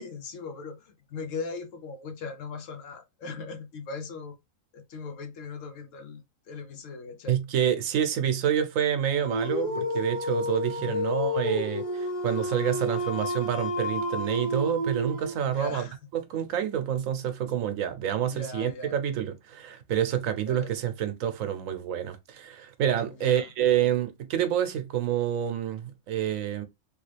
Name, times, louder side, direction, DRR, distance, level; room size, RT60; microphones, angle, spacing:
voice 1, 0.0-4.4 4.7-7.4 10.6-11.0 15.4-16.0 18.2-19.0 20.5-20.8 23.1-23.5, left 4 dB, 70° left, 1.1 m, -39 dB
voice 2, 7.3-15.9 16.1-26.6, right 10 dB, 80° right, 1.1 m, -28 dB
Dog, 9.2-15.5, left 1 dB, 35° left, 0.6 m, -30 dB
3.5 x 2.4 x 3.3 m
omnidirectional pair, 1.4 m